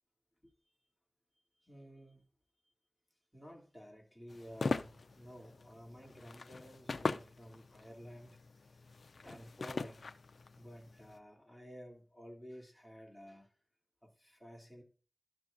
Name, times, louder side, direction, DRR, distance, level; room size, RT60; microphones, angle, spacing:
voice 1, 1.6-2.3 3.3-8.9 9.2-10.1 10.6-13.5 14.0-14.8, equal, 5° left, 2.7 m, -53 dB
sound 1, 4.3-11.2, left 4 dB, 90° left, 0.4 m, -41 dB
11.5 x 6.2 x 2.6 m
wide cardioid pair, 60°, 0 cm